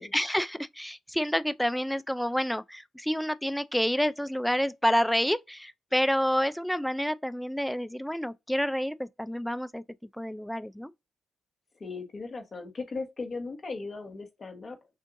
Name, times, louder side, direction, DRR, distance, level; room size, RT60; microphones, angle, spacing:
voice 1, 0.1-9.8 10.2-10.9, equal, 5° left, 0.4 m, -28 dB
voice 2, 11.8-14.8, left 3 dB, 45° left, 1.4 m, -37 dB
6.3 x 2.5 x 2.6 m
cardioid pair, 70°, 0 cm